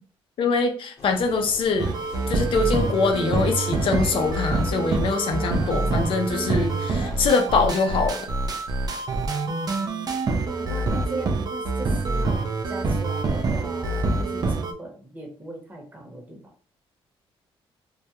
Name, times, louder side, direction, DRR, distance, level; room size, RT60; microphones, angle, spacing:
voice 1, 0.4-2.0 2.3-8.3, left 4 dB, 60° left, 5 dB, 0.5 m, -23 dB
sound 1, 1.0-7.2, left 2 dB, 35° left, 0.9 m, -42 dB
sound 2, 1.8-14.7, right 3 dB, 40° right, 0.4 m, -26 dB
voice 2, 9.5-10.1 10.5-16.4, right 1 dB, 15° right, 0 dB, 0.9 m, -38 dB
2.3 x 2.1 x 2.8 m, 0.42 s
cardioid pair, 105°, 10 cm